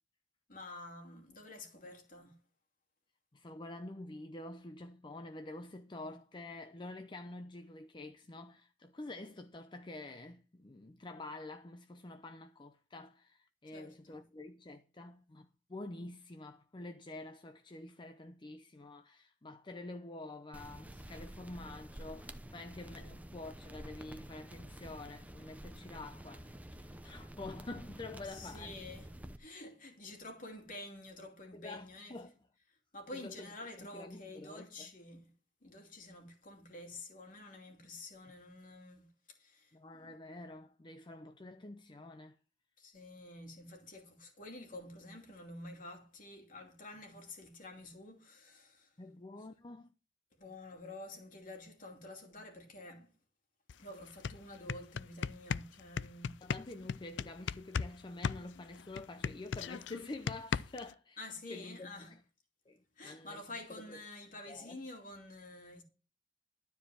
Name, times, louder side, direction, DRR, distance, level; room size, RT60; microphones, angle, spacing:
voice 1, 0.5-2.4 6.0-6.1 13.7-14.2 22.9-23.2 28.3-32.2 32.9-35.3 35.6-39.1 39.4-40.2 42.8-48.9 50.4-53.1 53.8-56.4 61.2-62.1 63.0-65.8, left 2 dB, 50° left, 2.7 m, -49 dB
voice 2, 3.3-28.8 31.5-32.3 33.1-33.5 33.8-34.9 39.7-42.4 49.0-49.9 56.4-61.2 61.5-62.2 62.7-63.5 63.8-64.0 64.5-64.8, left 2 dB, 25° left, 0.6 m, -48 dB
sound 1, 20.5-29.4, right 1 dB, 10° right, 0.7 m, -49 dB
sound 2, 53.7-53.8 54.1-57.9 58.2-60.9, left 6 dB, 80° left, 0.4 m, -36 dB
12.5 x 4.8 x 7.6 m
head